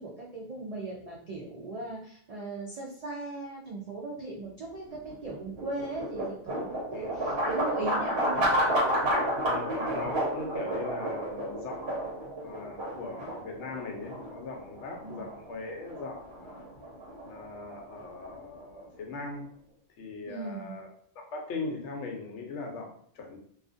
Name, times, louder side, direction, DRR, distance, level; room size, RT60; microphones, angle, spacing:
voice 1, 0.0-8.5 15.0-15.3 20.3-20.8, right 2 dB, 85° right, -2 dB, 0.3 m, -38 dB
sound 1, 4.9-19.0, right 1 dB, 60° right, 1.1 m, -31 dB
voice 2, 9.4-11.9 12.4-16.7 17.3-19.5 20.0-20.9 21.2-23.4, left 3 dB, 75° left, 2 dB, 0.9 m, -40 dB
2.4 x 2.4 x 2.4 m, 0.63 s
omnidirectional pair, 1.2 m